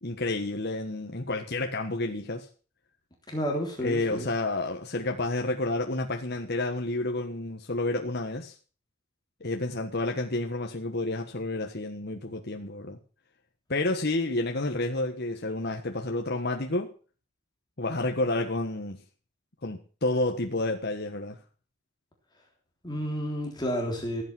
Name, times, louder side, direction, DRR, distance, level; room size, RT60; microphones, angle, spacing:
voice 1, 0.0-2.5 3.8-8.5 9.4-13.0 13.7-16.9 17.8-19.0 19.6-21.4, left 2 dB, 50° left, 1.5 m, -30 dB
voice 2, 3.3-4.2 22.8-24.2, equal, 20° left, 3.5 m, -31 dB
15.5 x 8.7 x 7.7 m
head